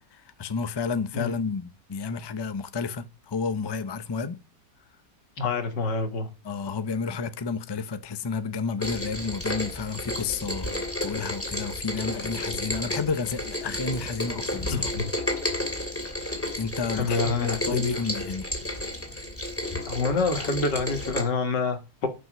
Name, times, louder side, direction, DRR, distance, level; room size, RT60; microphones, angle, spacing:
voice 1, 0.0-4.4 6.4-14.9 16.6-18.5, left 5 dB, 40° left, 0.3 m, -31 dB
voice 2, 5.4-6.3 14.7-15.1 16.9-18.0 19.9-22.1, left 4 dB, 85° left, 2.4 m, -27 dB
Rain, 8.8-21.2, left 1 dB, 5° left, 2.7 m, -32 dB
11.0 x 6.1 x 6.2 m
omnidirectional pair, 1.8 m